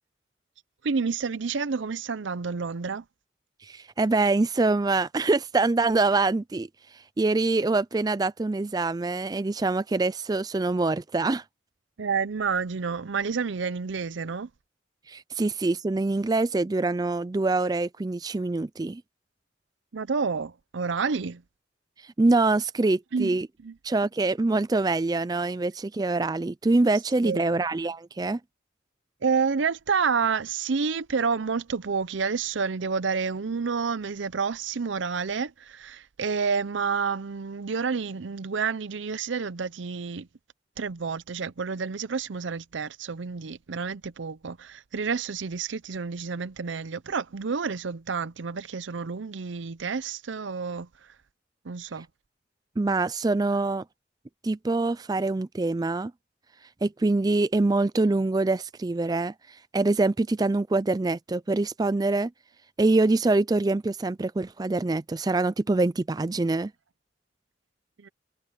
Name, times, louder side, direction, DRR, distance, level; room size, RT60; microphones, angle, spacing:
voice 1, 0.8-3.0 12.0-14.5 19.9-21.4 23.1-23.4 23.6-23.7 27.2-27.5 29.2-40.3 40.8-50.9 51.6-52.1 68.0-68.1, right 5 dB, 75° right, 0.6 m, -29 dB
voice 2, 3.6-6.7 7.2-11.4 15.1-19.0 22.2-23.5 23.8-28.4 52.8-53.8 54.4-56.1 56.8-59.3 59.7-62.3 62.8-66.7, right 2 dB, 20° right, 0.4 m, -24 dB
head